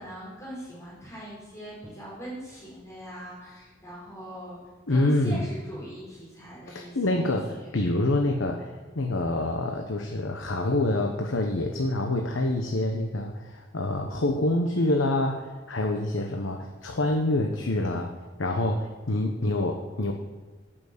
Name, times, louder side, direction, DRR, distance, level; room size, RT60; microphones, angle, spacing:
voice 1, 0.0-4.6 4.9-7.3 7.5-7.7 8.1-8.2, right 1 dB, 15° left, -8 dB, 4.2 m, -41 dB
voice 2, 4.9-5.5 6.7-18.1 18.4-20.1, left 1 dB, 90° left, 2 dB, 1.1 m, -26 dB
11.0 x 6.1 x 8.3 m, 1.3 s
head